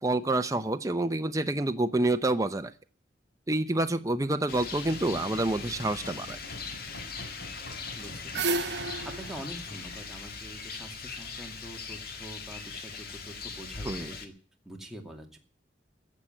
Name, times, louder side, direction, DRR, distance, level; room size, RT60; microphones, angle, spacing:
voice 1, 0.0-2.7 3.5-6.4 13.8-14.1, right 2 dB, 20° right, 7 dB, 0.7 m, -28 dB
Rain, 4.5-14.3, left 5 dB, 55° left, 1.9 m, -40 dB
sound 1, 4.8-10.2, left 1 dB, 80° left, 3.7 m, -47 dB
voice 2, 7.9-14.3 14.6-15.4, right 1 dB, ahead, 0 dB, 2.5 m, -45 dB
sound 2, 7.9-11.0, right 3 dB, 65° right, 1.1 m, -33 dB
15.0 x 7.5 x 9.0 m, 0.41 s
head